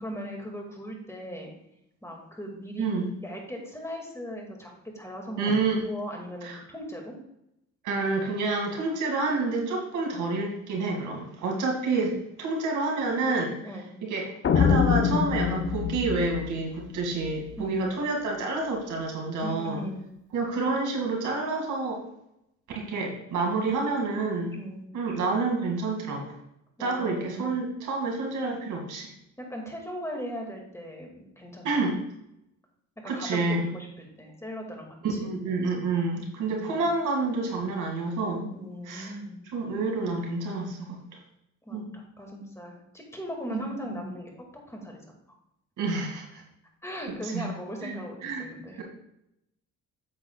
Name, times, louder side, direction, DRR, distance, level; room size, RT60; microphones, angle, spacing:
voice 1, 0.0-1.5 2.0-2.9 3.2-5.5 5.8-7.1 13.6-13.9 17.6-17.8 19.4-20.0 24.5-24.9 26.8-27.6 29.4-31.9 33.0-35.3 36.5-36.9 38.5-39.4 41.7-45.0 46.8-48.8, equal, 10° left, 0 dB, 2.1 m, -38 dB
voice 2, 5.4-5.8 6.4-6.6 7.8-13.5 14.0-19.9 20.3-22.0 22.7-24.6 24.9-26.3 26.8-29.1 31.6-31.9 33.0-33.7 35.0-38.5 38.9-39.1 39.5-41.0 41.7-41.9 43.5-44.0 45.8-46.2 47.2-47.4 47.8-47.9 48.2-48.4 48.8-48.9, right 3 dB, 80° right, 0 dB, 2.2 m, -28 dB
sound 1, 14.4-17.5, left 7 dB, 40° left, 0.7 m, -25 dB
8.7 x 7.8 x 2.3 m, 0.82 s
cardioid pair, 90°, 30 cm